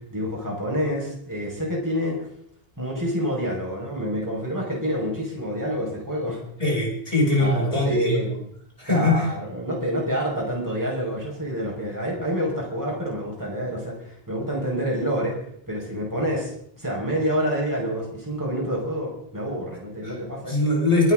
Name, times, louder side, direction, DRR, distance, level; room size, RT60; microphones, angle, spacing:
voice 1, 0.1-2.3 2.8-6.4 7.4-8.3 8.9-15.4 15.7-20.6, equal, 20° right, -3 dB, 5.6 m, -28 dB
voice 2, 6.6-8.4 8.8-9.3 20.0-20.1 20.5-21.1, left 2 dB, 35° left, -4 dB, 7.7 m, -21 dB
22.5 x 13.0 x 3.9 m, 0.67 s
omnidirectional pair, 1.0 m